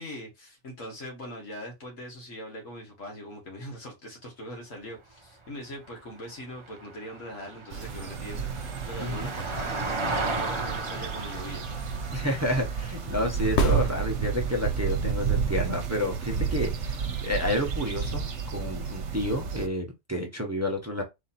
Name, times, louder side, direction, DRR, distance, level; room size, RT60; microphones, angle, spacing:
voice 1, 0.0-11.6, equal, 80° left, 2.1 m, -41 dB
Vehicle, 4.8-15.2 17.5-17.6, right 3 dB, 30° right, 0.6 m, -37 dB
sound 1, 7.7-19.7, right 7 dB, 70° right, 1.1 m, -31 dB
voice 2, 12.1-18.2 18.5-21.0, left 1 dB, 15° right, 0.9 m, -30 dB
sound 2, 13.5-14.7 18.6-18.7, left 4 dB, 60° left, 1.1 m, -30 dB
4.1 x 2.8 x 4.2 m
omnidirectional pair, 1.3 m